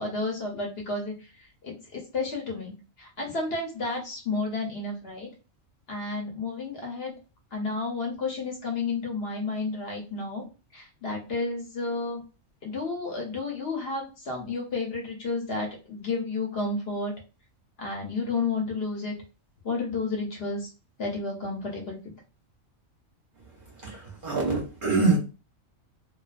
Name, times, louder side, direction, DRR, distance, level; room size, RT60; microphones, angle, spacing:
voice 1, 0.0-1.3 1.6-2.7 3.0-5.3 5.9-7.1 7.5-10.4 10.7-12.2 12.6-17.1 17.8-19.1 19.6-20.7 21.0-22.0, left 3 dB, 55° left, 0 dB, 0.9 m, -31 dB
voice 2, 23.8-25.2, right 3 dB, 50° right, -2 dB, 0.7 m, -25 dB
2.4 x 2.2 x 2.4 m, 0.31 s
omnidirectional pair, 1.4 m